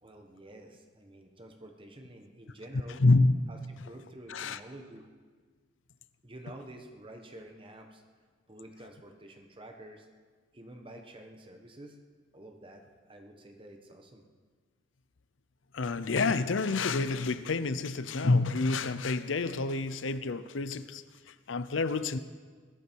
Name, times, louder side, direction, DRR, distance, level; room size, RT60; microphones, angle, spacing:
voice 1, 0.0-3.0 3.5-5.1 6.2-8.0 8.5-10.1 10.5-12.0 12.3-14.2, right 1 dB, 30° right, 4 dB, 1.4 m, -49 dB
voice 2, 3.0-3.3 4.3-4.6 15.7-22.2, left 3 dB, 90° left, 13 dB, 0.7 m, -28 dB
21.5 x 11.5 x 4.6 m, 1.6 s
head